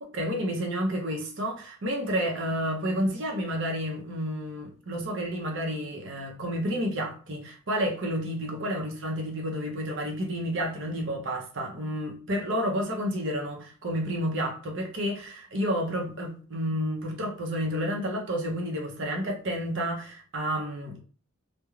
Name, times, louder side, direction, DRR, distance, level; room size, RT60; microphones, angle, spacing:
voice 1, 0.0-21.0, equal, 60° right, 0.6 m, -30 dB
3.0 x 2.1 x 2.4 m
head